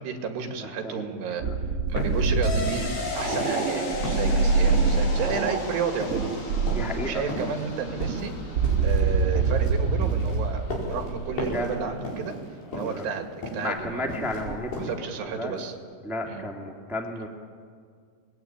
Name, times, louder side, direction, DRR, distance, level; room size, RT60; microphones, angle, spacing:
voice 1, 0.0-1.4 1.9-6.3 6.9-8.3 8.8-12.4 12.7-14.2 14.8-15.7 16.3-16.4, right 6 dB, 70° right, 4 dB, 4.1 m, -32 dB
voice 2, 0.6-1.1 1.4-1.5 4.1-4.2 6.7-7.3 11.5-11.7 12.7-13.0 13.6-14.9 15.4-15.5 16.0-17.3, left 1 dB, ahead, 0 dB, 0.7 m, -33 dB
sound 1, 1.4-5.6 6.1-7.0 7.7-11.8 14.1-14.6, right 4 dB, 35° right, 3.4 m, -25 dB
sound 2, 2.0-3.8 4.0-6.4 6.7-7.0 7.3-9.7 10.0-11.1 11.4-11.7 12.0-12.5 12.7-13.7 14.0-14.5 14.7-14.9, left 1 dB, 65° left, 7.0 m, -35 dB
sound 3, 2.4-11.8 12.1-12.2, left 3 dB, 40° left, 3.8 m, -37 dB
27.0 x 20.5 x 8.9 m, 2.1 s
omnidirectional pair, 5.1 m